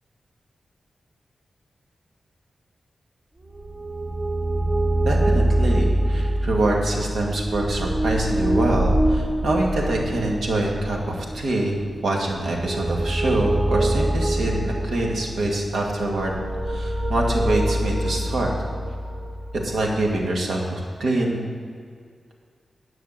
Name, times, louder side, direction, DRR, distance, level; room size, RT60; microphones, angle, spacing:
sound 1, 3.5-20.2, right 1 dB, 20° right, 0.7 m, -25 dB
voice 1, 5.0-11.8 12.0-16.3 16.6-18.5 19.6-21.5, right 1 dB, 90° right, -1 dB, 1.9 m, -25 dB
10.5 x 6.1 x 7.4 m, 2.1 s
wide cardioid pair, 145°, 0 cm